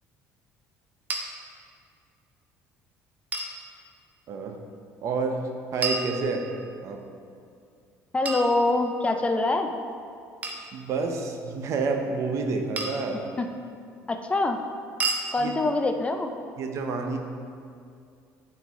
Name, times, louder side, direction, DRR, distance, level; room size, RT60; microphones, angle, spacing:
sound 1, 1.1-1.2 3.3-3.6 5.8-6.7 8.3-9.1 10.4-10.7 12.8-13.2 15.0-15.3, right 3 dB, 25° right, 0.8 m, -31 dB
voice 1, 5.0-6.5 6.8-7.0 10.7-13.2 15.4-15.5 16.6-17.2, right 4 dB, 55° right, 4 dB, 0.8 m, -29 dB
voice 2, 8.1-9.7 13.4-13.5 14.1-14.6 15.3-16.3, left 2 dB, 20° left, 5 dB, 0.4 m, -24 dB
8.9 x 4.7 x 3.6 m, 2.4 s
cardioid pair, 110°, 6 cm